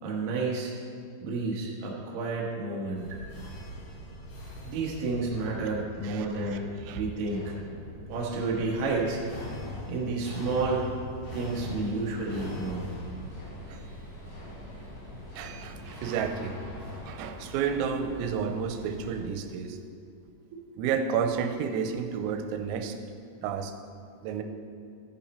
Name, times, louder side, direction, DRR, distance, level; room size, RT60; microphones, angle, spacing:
voice 1, 0.0-0.7 1.2-3.2 4.6-7.6 8.1-9.2 9.9-10.9 11.3-12.9 19.7-19.8 20.5-20.6, right 3 dB, 70° right, -4 dB, 2.1 m, -31 dB
sound 1, 3.0-17.0, left 1 dB, 80° left, 4.9 m, -42 dB
voice 2, 6.0-6.6 6.9-7.1 13.7-13.8 15.4-16.6 17.1-19.8 20.8-23.0 23.4-23.7 24.2-24.4, right 6 dB, 90° right, 6 dB, 3.3 m, -31 dB
sound 2, 11.3-19.2, equal, 35° left, 3.4 m, -47 dB
14.0 x 7.2 x 4.3 m, 2.3 s
omnidirectional pair, 5.9 m